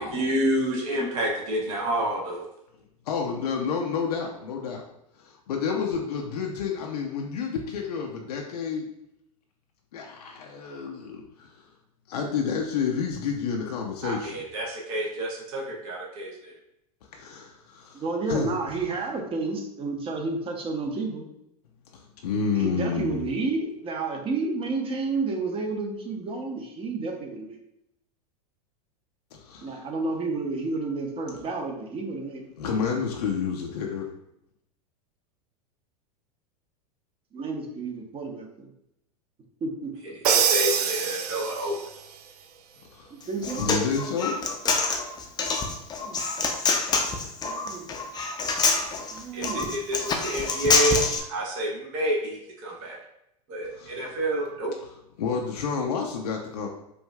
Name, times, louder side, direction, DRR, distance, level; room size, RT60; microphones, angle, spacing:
voice 1, 0.0-2.4 14.0-16.5 40.3-41.8 49.3-53.0 53.5-54.7, right 1 dB, 55° right, -2 dB, 1.1 m, -29 dB
voice 2, 3.1-4.8 5.2-8.9 9.9-11.7 12.1-14.4 17.1-18.8 21.9-23.3 29.3-29.8 32.6-34.1 42.9-43.1 43.6-44.4 53.7-54.1 55.2-56.7, left 6 dB, 75° left, 0 dB, 0.5 m, -30 dB
voice 3, 17.9-21.3 22.6-27.6 29.6-32.5 37.3-38.7 39.6-40.1 43.1-43.7 46.0-46.2 47.4-47.9 49.1-49.7, right 3 dB, 30° right, 2 dB, 0.8 m, -31 dB
Crash cymbal, 40.2-41.9, right 7 dB, 75° right, 0.4 m, -24 dB
Human voice, 43.2-51.2, left 4 dB, 20° left, 0.6 m, -26 dB
4.6 x 2.6 x 2.2 m, 0.79 s
hypercardioid pair, 95°, 20 cm